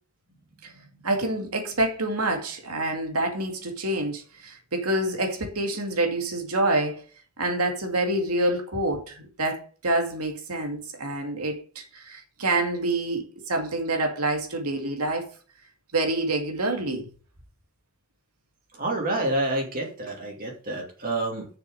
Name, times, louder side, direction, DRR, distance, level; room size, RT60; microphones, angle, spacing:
voice 1, 1.0-7.0 7.4-15.3 15.9-17.1, right 2 dB, 80° right, 2.4 m, -27 dB
voice 2, 18.8-21.5, right 1 dB, 40° right, 2.7 m, -28 dB
6.9 x 6.7 x 6.6 m
head